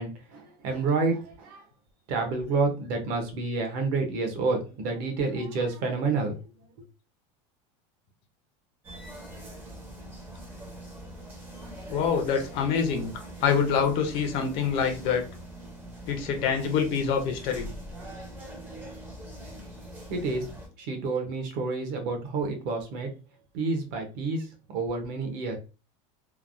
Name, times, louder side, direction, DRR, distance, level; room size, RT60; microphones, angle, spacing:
voice 1, 0.0-1.6 2.1-6.4 20.1-20.4 20.8-23.1 23.5-24.4 24.7-25.6, right 3 dB, 45° right, 4 dB, 0.8 m, -29 dB
sound 1, 8.8-20.7, right 1 dB, 10° right, 0.6 m, -43 dB
voice 2, 11.9-15.2 16.1-17.7, left 6 dB, 35° left, 6 dB, 0.5 m, -26 dB
3.2 x 2.1 x 2.5 m, 0.32 s
supercardioid pair, 175°, 16 cm